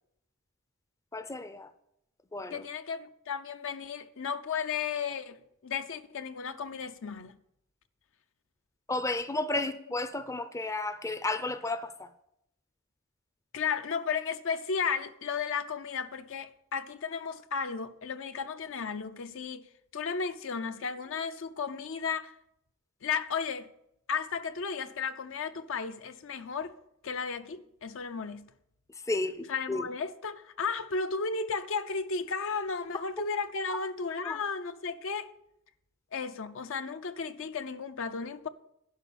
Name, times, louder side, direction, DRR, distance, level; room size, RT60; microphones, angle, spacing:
voice 1, 1.1-1.7 2.3-2.7 8.9-12.1 29.1-29.9 34.2-34.4, left 2 dB, 15° left, 0.5 m, -33 dB
voice 2, 2.5-7.3 13.5-19.6 19.9-22.3 23.0-23.7 24.1-26.7 27.0-28.5 29.5-35.3 36.1-38.5, left 5 dB, 65° left, 0.6 m, -34 dB
11.0 x 5.4 x 8.6 m
head